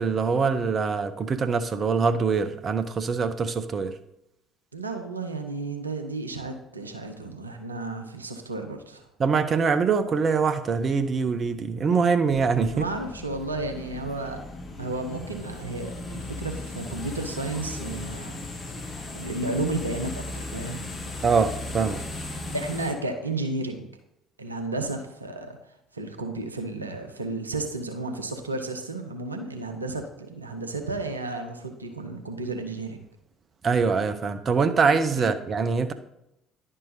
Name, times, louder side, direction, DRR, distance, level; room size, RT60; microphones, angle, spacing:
voice 1, 0.0-3.9 9.2-12.8 21.2-22.0 33.6-35.9, right 5 dB, 40° right, 10 dB, 0.5 m, -24 dB
voice 2, 4.7-9.1 12.7-14.4 14.8-18.4 19.1-20.8 22.5-23.9 24.4-25.6 25.9-33.0 35.2-35.3, right 2 dB, 85° right, 5 dB, 0.6 m, -32 dB
sound 1, 12.3-22.9, left 2 dB, 30° left, 1.2 m, -37 dB
10.5 x 5.5 x 2.7 m, 0.82 s
figure-of-eight pair, 55°, 0 cm